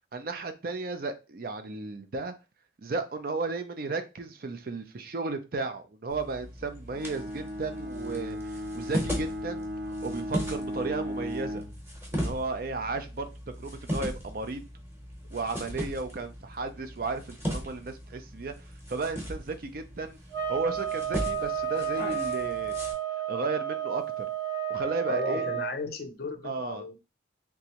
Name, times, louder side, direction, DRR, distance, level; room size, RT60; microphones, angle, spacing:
voice 1, 0.1-2.3 2.8-11.6 12.1-14.6 15.3-18.5 18.9-20.2 20.5-22.7 23.3-24.3 24.7-25.5 26.4-26.8, right 3 dB, 50° right, 0.5 m, -34 dB
sound 1, 6.1-22.9, equal, 10° right, 0.9 m, -38 dB
Bowed string instrument, 6.9-11.8, equal, 65° right, 0.9 m, -36 dB
sound 2, 20.3-25.7, right 8 dB, 80° right, 1.2 m, -31 dB
voice 2, 25.1-27.0, left 3 dB, 50° left, 0.5 m, -35 dB
3.5 x 3.0 x 2.9 m
head